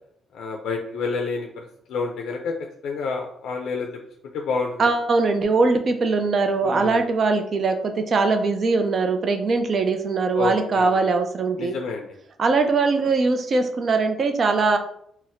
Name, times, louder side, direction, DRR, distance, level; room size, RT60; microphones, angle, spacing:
voice 1, 0.3-1.5 1.9-2.5 2.8-3.9 4.3-4.9 6.6-7.1 10.3-11.0 11.6-12.1, left 4 dB, 75° left, 1 dB, 0.4 m, -28 dB
voice 2, 4.8-11.8 12.4-14.8, right 3 dB, 50° right, 6 dB, 0.4 m, -21 dB
4.0 x 2.0 x 2.5 m, 0.70 s
cardioid pair, 90°, 0 cm